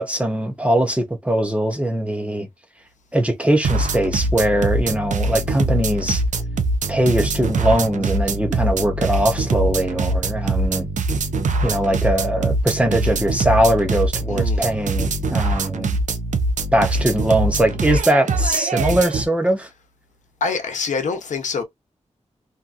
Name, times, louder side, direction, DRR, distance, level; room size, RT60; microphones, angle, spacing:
voice 1, 0.0-2.5 3.1-6.2 6.9-10.9 11.6-16.0 16.7-19.7, right 1 dB, 10° right, 0.7 m, -21 dB
sound 1, 3.6-19.3, right 2 dB, 85° right, 0.5 m, -23 dB
voice 2, 14.3-14.7 20.4-21.6, left 5 dB, 80° left, 0.7 m, -25 dB
2.8 x 2.5 x 2.4 m
wide cardioid pair, 140°, 12 cm